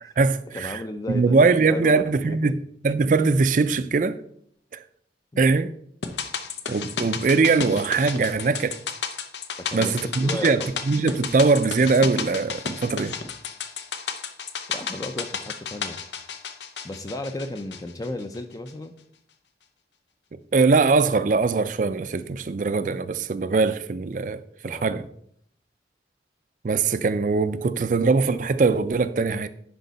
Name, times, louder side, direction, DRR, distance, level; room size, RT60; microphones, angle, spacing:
voice 1, 0.0-0.8 1.1-2.6 2.8-4.2 5.4-5.7 6.7-8.8 9.7-13.2 20.5-25.1 26.6-29.5, right 4 dB, 45° right, 0.4 m, -21 dB
voice 2, 0.5-2.6 5.3-5.6 9.6-10.7 14.7-16.0 16.8-18.9 24.6-25.0, left 1 dB, 20° left, 0.4 m, -35 dB
sound 1, 6.0-18.4 18.7-18.8, left 6 dB, 80° left, 0.7 m, -33 dB
10.5 x 4.6 x 4.0 m
head